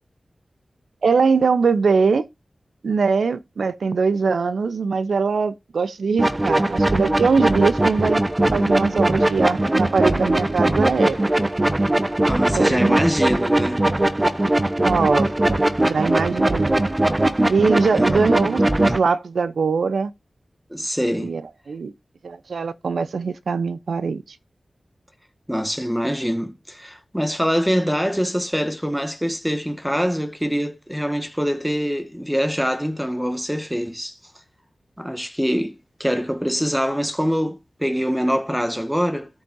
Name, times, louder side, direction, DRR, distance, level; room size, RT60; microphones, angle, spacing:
voice 1, 1.0-2.2 2.8-8.2 8.5-11.2 12.6-13.1 14.8-16.8 17.5-20.1 21.2-21.4 21.7-21.9 22.2-24.2, right 5 dB, 85° right, 0.8 m, -22 dB
sound 1, 6.2-19.0, right 1 dB, 30° right, 1.2 m, -20 dB
voice 2, 12.3-13.9 17.9-18.2 20.7-21.4 25.5-34.2 35.0-39.3, equal, 5° right, 1.8 m, -24 dB
13.0 x 7.6 x 2.8 m
cardioid pair, 40°, 0 cm